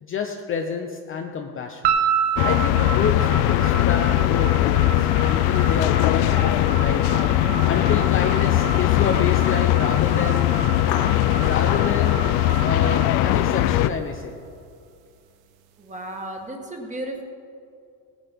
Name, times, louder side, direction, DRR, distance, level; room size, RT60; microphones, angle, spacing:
voice 1, 0.0-1.9 2.4-7.0 7.4-10.6 11.4-12.3 12.6-14.3, left 6 dB, 25° left, 3 dB, 0.8 m, -29 dB
sound 1, 1.8-14.1, right 7 dB, 50° right, 1.3 m, -30 dB
sound 2, 2.4-13.9, left 14 dB, 55° left, 0.7 m, -20 dB
voice 2, 15.8-17.2, right 1 dB, 15° right, 2 dB, 1.8 m, -34 dB
17.0 x 10.0 x 5.3 m, 2.4 s
supercardioid pair, 125°, 47 cm